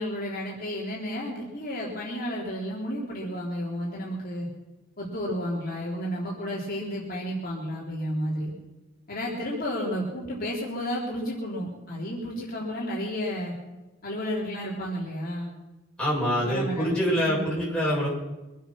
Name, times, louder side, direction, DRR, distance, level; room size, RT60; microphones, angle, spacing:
voice 1, 0.0-4.5 5.0-8.5 9.1-13.5 14.0-15.5 16.4-16.9 17.2-17.4, equal, 50° left, -5 dB, 3.9 m, -32 dB
voice 2, 16.0-18.1, equal, 5° left, -6 dB, 7.5 m, -25 dB
24.5 x 9.4 x 6.1 m, 1.0 s
head